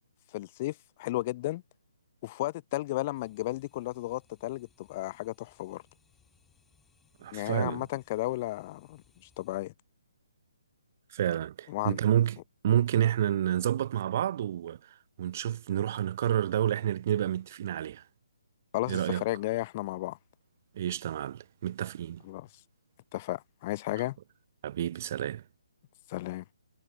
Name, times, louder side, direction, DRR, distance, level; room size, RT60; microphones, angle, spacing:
voice 1, 0.3-1.6 2.2-5.8 7.3-9.0 9.4-9.7 11.7-12.0 18.7-20.2 22.2-22.5 23.1-24.2 26.1-26.4, left 17 dB, 25° left, 0.6 m, -33 dB
sound 1, 3.1-9.6, left 5 dB, 5° left, 4.5 m, -67 dB
voice 2, 7.2-7.8 11.1-12.4 12.6-18.0 18.9-19.2 20.8-22.2 24.6-25.4, right 11 dB, 35° right, 0.5 m, -29 dB
figure-of-eight pair, 135°, 2 cm